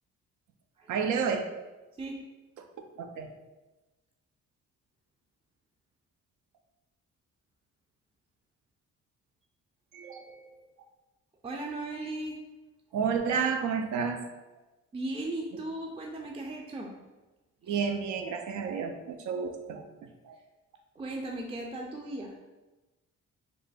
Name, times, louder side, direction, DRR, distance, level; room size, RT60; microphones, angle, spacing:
voice 1, 0.9-1.5 2.6-2.7 3.0-3.3 9.9-10.6 12.9-14.2 17.6-19.8 20.2-20.4, right 6 dB, 75° right, 6 dB, 0.5 m, -31 dB
voice 2, 11.4-12.4 14.9-16.9 17.6-17.8 21.0-22.3, right 2 dB, 20° right, 0 dB, 0.4 m, -37 dB
3.2 x 2.2 x 4.0 m, 1.1 s
cardioid pair, 90°, 30 cm